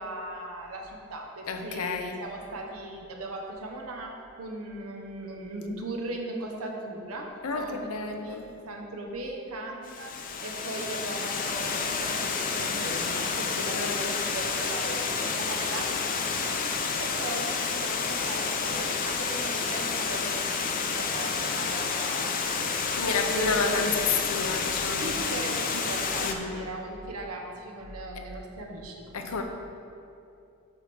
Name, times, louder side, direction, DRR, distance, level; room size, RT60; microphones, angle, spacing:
voice 1, 0.0-4.1 4.4-7.3 7.5-10.1 10.4-16.6 17.0-23.0 23.3-23.9 25.0-29.3, right 2 dB, 85° right, 1 dB, 1.1 m, -38 dB
voice 2, 1.5-2.2 7.4-8.5 13.6-14.0 22.9-25.1 26.2-26.7 29.1-29.4, left 4 dB, 85° left, 4 dB, 0.7 m, -30 dB
Water, 9.8-26.3, left 5 dB, 40° left, 0.5 m, -30 dB
8.0 x 3.5 x 6.1 m, 2.6 s
head